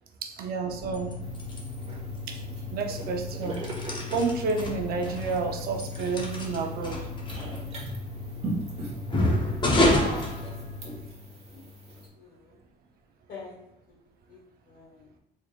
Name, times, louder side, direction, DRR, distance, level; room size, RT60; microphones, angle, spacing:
voice 1, 0.2-1.2 2.3-3.7 4.1-7.1, right 4 dB, 65° right, 4 dB, 0.6 m, -30 dB
sound 1, 0.7-11.2, left 1 dB, 30° left, 0.8 m, -30 dB
sound 2, 1.2-12.1, right 1 dB, 40° right, 1.3 m, -41 dB
voice 2, 9.8-10.3 11.5-11.7 12.1-12.6 13.3-13.6 14.3-15.1, left 3 dB, 60° left, -2 dB, 1.5 m, -41 dB
4.2 x 3.3 x 2.4 m, 0.87 s
cardioid pair, 110°, 17 cm